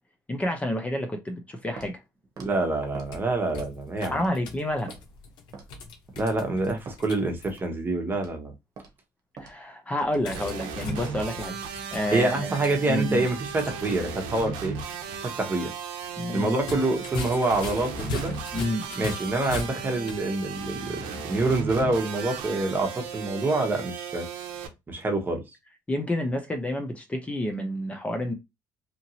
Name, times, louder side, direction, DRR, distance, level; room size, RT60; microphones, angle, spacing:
voice 1, 0.3-2.0 4.0-4.9 9.4-12.5 12.9-13.2 16.2-16.6 18.5-18.9 25.9-28.3, left 1 dB, 15° left, 0.6 m, -29 dB
Walk footsteps, 1.8-2.0 2.4-2.5 2.9-3.1 3.5-3.8 4.2-4.3 4.9-5.0 5.5-5.8 6.2-6.4 6.9-7.0 7.5-7.7 8.1-8.4 8.8-8.9 9.4-9.5 10.0-10.2 10.6-10.8, right 4 dB, 55° right, 0.9 m, -43 dB
voice 2, 2.4-4.2 6.2-8.5 12.1-14.8 15.2-15.7 16.3-18.3 18.9-24.2 24.9-25.4, right 2 dB, 25° right, 1.0 m, -26 dB
sound 1, 2.8-7.6 10.2-13.9 14.2-14.3 16.5-20.3, left 4 dB, 75° left, 0.8 m, -39 dB
sound 2, 10.3-24.7, right 6 dB, 85° right, 0.6 m, -36 dB
2.9 x 2.6 x 2.7 m
cardioid pair, 95°, 8 cm